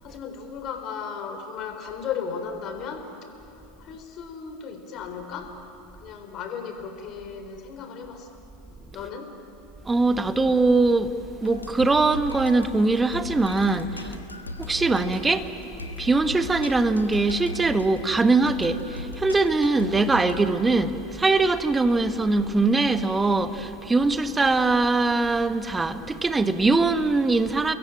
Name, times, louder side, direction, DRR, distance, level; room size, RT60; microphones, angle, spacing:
voice 1, 0.0-3.3 3.8-5.5 6.0-8.3 8.9-9.3 14.0-14.2, left 6 dB, 40° left, 3.9 m, -35 dB
voice 2, 9.8-14.2 14.6-15.5 16.0-27.8, right 3 dB, 15° right, 1.4 m, -22 dB
sound 1, 11.4-20.5, left 1 dB, 85° left, 1.5 m, -38 dB
29.5 x 22.0 x 9.0 m
figure-of-eight pair, 80°, 0 cm